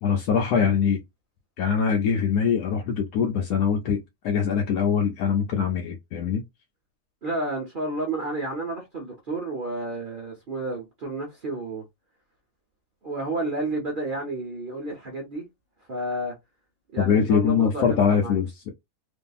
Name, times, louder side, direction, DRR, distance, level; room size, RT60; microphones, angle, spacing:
voice 1, 0.0-1.0 1.6-6.4 17.0-18.7, left 7 dB, 70° left, 1.0 m, -23 dB
voice 2, 7.2-11.8 13.0-15.5 15.9-16.3 16.9-18.4, right 2 dB, 45° right, 0.7 m, -31 dB
2.7 x 2.5 x 2.3 m
omnidirectional pair, 1.7 m